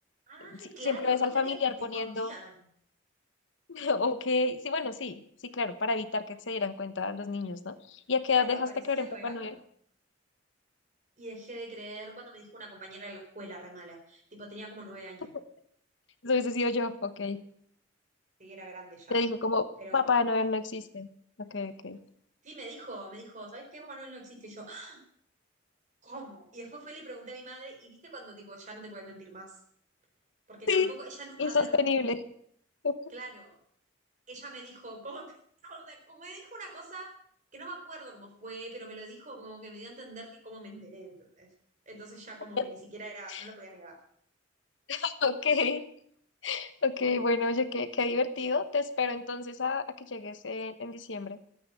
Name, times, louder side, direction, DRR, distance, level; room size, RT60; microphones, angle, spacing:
voice 1, 0.3-1.5 1.9-2.7 8.3-9.6 11.2-15.3 18.4-19.2 19.8-20.2 22.4-25.0 26.0-29.6 30.5-31.8 33.1-33.6 34.3-35.4 35.6-37.1 37.5-41.5 41.9-44.0 47.0-47.3, right 2 dB, 40° right, 2 dB, 4.3 m, -44 dB
voice 2, 0.8-2.3 3.7-5.2 5.5-7.7 8.1-9.5 16.2-17.4 19.1-19.7 19.9-21.1 21.4-22.0 30.7-30.9 31.4-32.2 32.8-32.9 42.6-42.7 43.3-43.4 44.9-45.8 46.4-51.4, left 4 dB, 70° left, 11 dB, 1.0 m, -29 dB
13.5 x 8.8 x 8.6 m, 0.66 s
head